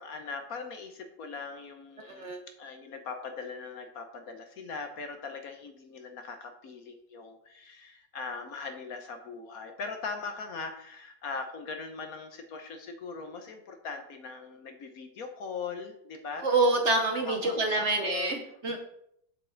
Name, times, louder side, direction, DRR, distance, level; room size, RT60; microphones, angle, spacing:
voice 1, 0.0-2.3 2.6-16.4 17.3-18.3, left 4 dB, 60° left, 6 dB, 1.2 m, -40 dB
voice 2, 2.0-2.4 16.4-18.8, right 2 dB, 50° right, 3 dB, 1.0 m, -27 dB
7.6 x 7.2 x 3.8 m, 0.73 s
omnidirectional pair, 1.9 m